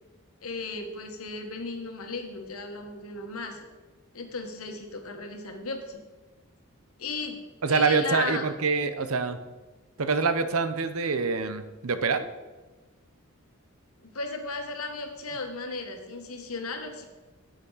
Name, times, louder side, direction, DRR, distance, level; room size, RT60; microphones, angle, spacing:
voice 1, 0.4-3.7 4.1-6.0 7.0-7.4 7.7-8.4 14.0-17.0, left 3 dB, 85° left, 4 dB, 1.5 m, -35 dB
voice 2, 7.6-9.4 10.0-12.3, right 4 dB, 80° right, 10 dB, 0.7 m, -25 dB
10.0 x 8.0 x 4.1 m, 1.2 s
head